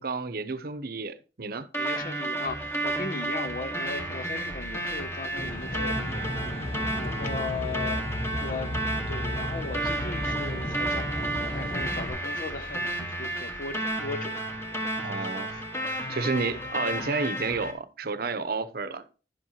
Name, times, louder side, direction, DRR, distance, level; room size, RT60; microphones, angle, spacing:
voice 1, 0.0-1.7 6.9-7.1 15.0-15.5 16.1-19.0, right 4 dB, 55° right, 0.8 m, -31 dB
sound 1, 1.7-17.7, right 1 dB, 15° left, 1.5 m, -32 dB
voice 2, 1.8-8.1 8.4-8.7 9.1-16.5, left 4 dB, 50° left, 0.6 m, -38 dB
Aircraft, 5.4-12.1, left 1 dB, 35° left, 1.0 m, -34 dB
11.0 x 7.5 x 2.9 m
head